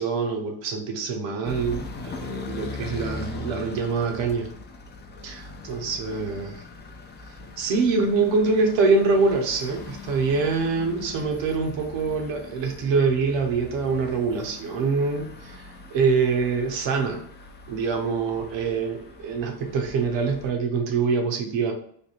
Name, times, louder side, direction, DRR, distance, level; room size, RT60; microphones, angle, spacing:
voice 1, 0.0-4.5 5.2-6.6 7.6-17.3 17.7-21.7, right 4 dB, 70° right, 4 dB, 1.0 m, -25 dB
sound 1, 1.4-20.5, left 3 dB, 25° left, 0.4 m, -41 dB
3.5 x 2.2 x 4.1 m, 0.65 s
cardioid pair, 100°, 46 cm